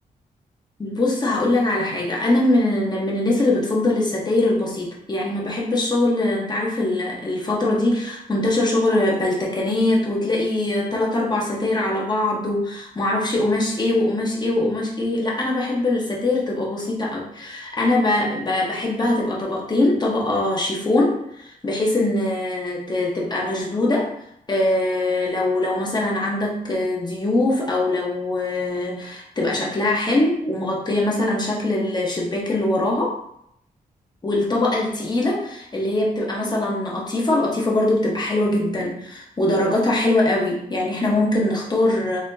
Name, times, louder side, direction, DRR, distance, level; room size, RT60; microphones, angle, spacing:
voice 1, 0.8-24.1 24.5-33.2 34.2-42.2, left 2 dB, 25° left, -3 dB, 1.1 m, -22 dB
4.2 x 2.9 x 2.7 m, 0.74 s
cardioid pair, 90°, 16 cm